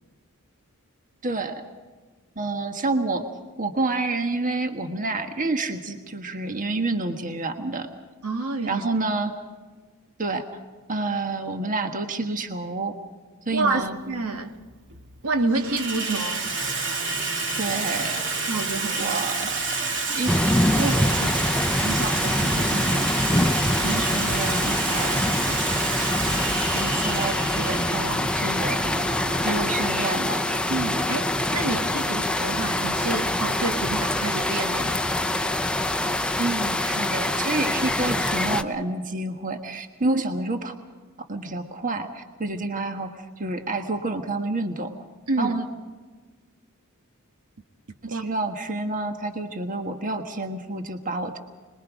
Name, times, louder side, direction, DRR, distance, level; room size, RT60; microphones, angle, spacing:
voice 1, 1.2-1.6 2.3-3.3 3.6-7.9 8.7-9.3 10.2-10.6 10.9-13.0 13.5-14.0 17.6-18.2 18.9-19.5 19.8-20.3 20.8-21.4 21.8-23.5 23.8-25.9 26.7-29.1 29.4-30.4 36.4-40.7 41.2-44.9 45.4-45.7 48.0-51.4, right 2 dB, 40° right, 6 dB, 1.5 m, -29 dB
voice 2, 8.2-8.9 13.5-14.5 15.2-16.5 18.5-19.1 23.8-24.0 26.1-26.5 30.7-35.0 40.0-40.2 45.3-45.6 48.1-48.2, right 3 dB, 75° right, 5 dB, 1.7 m, -28 dB
Water tap faucet / Sink (filling or washing), 13.6-13.7 14.7-15.1 15.4-33.0, right 3 dB, 60° right, 2.4 m, -30 dB
sound 1, 20.3-38.6, left 1 dB, 5° left, 0.7 m, -25 dB
26.0 x 21.5 x 5.1 m, 1.4 s
head